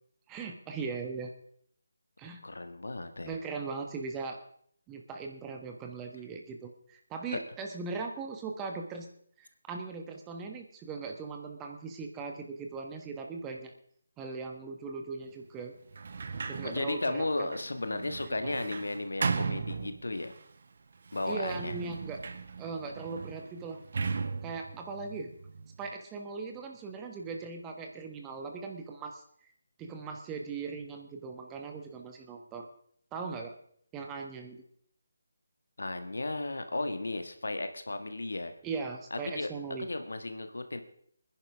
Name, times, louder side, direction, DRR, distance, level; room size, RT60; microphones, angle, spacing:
voice 1, 0.3-1.3 2.2-2.4 3.2-4.4 4.9-9.1 9.4-13.7 14.2-15.7 16.5-17.5 18.3-18.7 21.3-22.2 22.6-23.8 24.4-25.3 25.8-29.2 29.8-32.7 33.1-33.5 33.9-34.6 38.6-39.9, right 4 dB, 15° right, 3 dB, 1.3 m, -39 dB
voice 2, 2.4-3.3 7.3-7.4 16.6-20.3 21.1-21.7 35.8-38.5 39.1-39.5 39.8-40.8, left 2 dB, 65° left, 8 dB, 1.6 m, -34 dB
Sliding door, 15.9-20.4 21.1-25.9, right 5 dB, 45° right, 1.0 m, -37 dB
25.0 x 10.5 x 3.5 m, 0.63 s
figure-of-eight pair, 150°, 0 cm